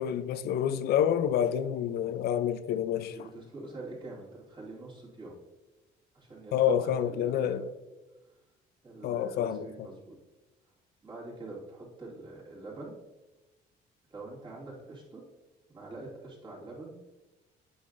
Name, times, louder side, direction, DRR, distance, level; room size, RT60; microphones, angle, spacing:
voice 1, 0.0-3.3 6.5-7.7 9.0-9.7, left 9 dB, 70° left, 0.5 m, -28 dB
voice 2, 3.0-5.3 6.1-7.6 8.8-10.1 11.0-12.9 14.1-15.2 15.7-17.0, right 2 dB, 30° right, 2.4 m, -45 dB
8.5 x 5.5 x 2.6 m
cardioid pair, 110°, 17 cm